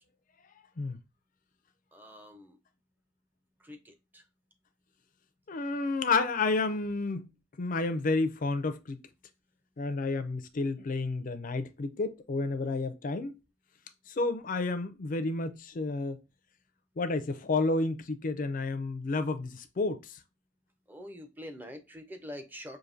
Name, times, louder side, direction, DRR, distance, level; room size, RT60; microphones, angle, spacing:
voice 1, 1.9-2.6 3.6-4.2 20.9-22.8, left 1 dB, 10° right, 0.5 m, -45 dB
voice 2, 5.5-7.3 7.6-9.0 9.8-13.3 14.1-16.2 17.0-20.2, left 3 dB, 45° left, 0.5 m, -30 dB
5.0 x 2.6 x 2.5 m
head